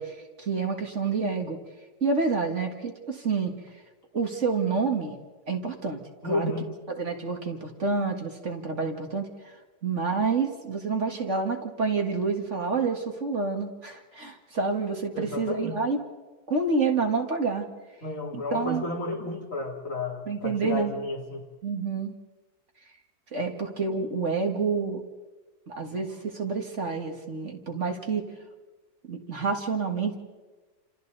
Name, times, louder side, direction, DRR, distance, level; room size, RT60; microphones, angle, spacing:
voice 1, 0.0-1.6 2.0-3.5 4.1-5.2 5.5-6.5 7.0-9.5 9.8-16.0 16.5-17.7 18.3-18.8 20.3-20.9 21.6-22.1 23.3-25.0 25.7-28.2 29.1-30.1, right 4 dB, 45° right, 3 dB, 2.2 m, -28 dB
voice 2, 6.2-6.7 15.1-15.8 18.0-21.4, left 2 dB, 50° left, 0 dB, 3.3 m, -32 dB
28.5 x 28.0 x 4.1 m, 1.3 s
omnidirectional pair, 1.7 m